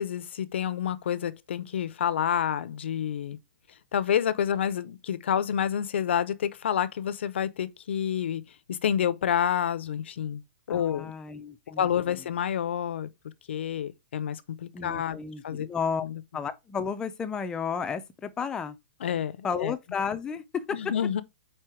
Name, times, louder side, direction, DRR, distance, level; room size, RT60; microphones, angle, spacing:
voice 1, 0.0-3.4 3.9-8.4 8.7-10.4 10.7-11.1 11.8-13.1 13.5-15.2 15.4-15.7 16.0-16.2 19.0-19.7 20.7-21.2, left 9 dB, 75° left, 0.7 m, -28 dB
voice 2, 10.7-11.9 14.7-16.1 16.3-18.8 19.4-20.8, left 6 dB, 10° left, 0.5 m, -32 dB
4.5 x 4.4 x 4.8 m
hypercardioid pair, 160°, 6 cm